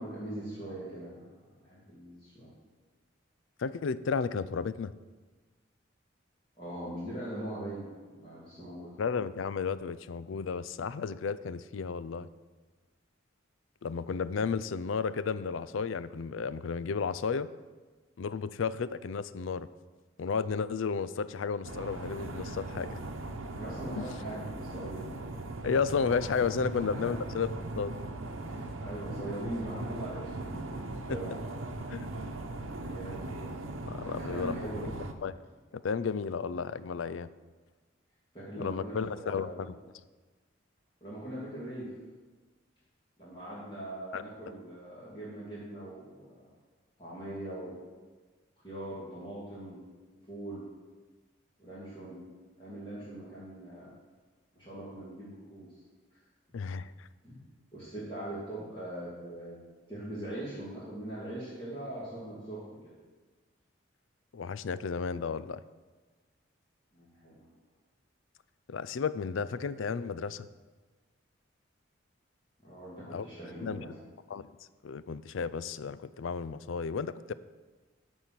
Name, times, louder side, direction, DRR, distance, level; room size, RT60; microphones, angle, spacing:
voice 1, 0.0-2.5 6.6-8.9 23.5-25.1 27.0-27.1 28.4-31.4 32.8-33.3 34.0-34.9 38.3-39.6 41.0-41.9 43.2-46.5 47.0-47.8 48.6-49.8 50.3-50.6 51.6-52.2 52.6-53.9 54.5-55.7 57.2-57.4 57.7-59.6 59.9-62.9 66.9-67.5 72.6-74.0, right 1 dB, 25° left, -9 dB, 2.5 m, -41 dB
voice 2, 3.6-4.9 9.0-12.3 13.8-17.5 18.2-19.7 20.2-23.0 24.0-24.1 25.6-27.5 27.8-27.9 31.9-32.1 33.9-34.9 35.2-35.3 35.7-37.3 38.6-39.7 44.1-44.2 56.5-57.1 64.3-65.6 68.7-70.5 73.1-73.3 73.6-73.9 74.3-74.5 74.8-77.3, left 5 dB, 80° left, 16 dB, 0.4 m, -33 dB
sound 1, 21.6-35.1, right 2 dB, 90° right, 0.9 m, -39 dB
12.5 x 4.4 x 7.6 m, 1.3 s
head